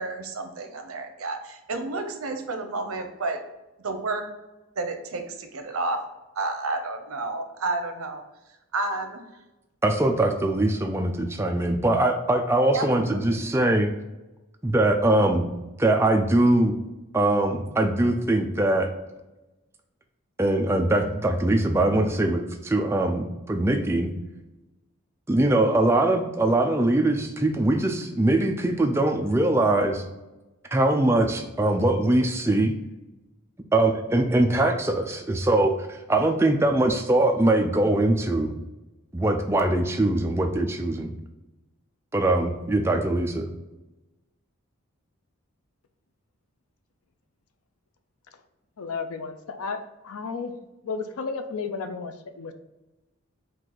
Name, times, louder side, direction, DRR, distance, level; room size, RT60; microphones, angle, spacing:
voice 1, 0.0-3.4 3.8-4.3 4.8-6.0 6.4-8.2 8.7-9.2 12.7-13.4, right 2 dB, 80° right, 5 dB, 0.7 m, -30 dB
voice 2, 9.8-13.9 14.6-15.5 15.8-16.8 17.1-18.9 20.4-24.1 25.3-30.0 30.7-32.7 33.7-38.6 39.1-41.1 42.1-43.5, right 1 dB, 10° right, 3 dB, 0.3 m, -22 dB
voice 3, 48.8-50.5 50.8-52.5, left 4 dB, 85° left, 9 dB, 0.5 m, -33 dB
4.6 x 2.5 x 3.8 m, 1.0 s
head